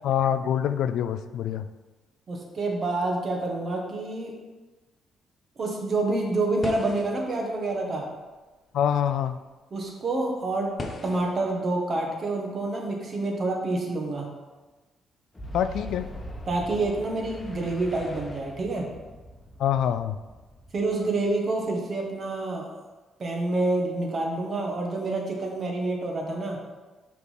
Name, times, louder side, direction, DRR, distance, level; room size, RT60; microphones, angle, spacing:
voice 1, 0.0-1.7 8.7-9.4 15.5-16.1 19.6-20.2, left 9 dB, 80° left, 12 dB, 0.3 m, -25 dB
voice 2, 2.3-4.3 5.6-8.1 9.7-10.7 11.0-14.3 16.5-18.9 20.7-22.7 23.2-26.6, right 2 dB, 45° right, 1 dB, 1.5 m, -28 dB
sound 1, 6.5-8.6 9.2-9.3 10.4-11.6, left 3 dB, 40° left, 0.8 m, -39 dB
Boom, 15.3-21.9, equal, 20° left, 1.2 m, -42 dB
5.8 x 3.7 x 5.7 m, 1.2 s
cardioid pair, 90°, 0 cm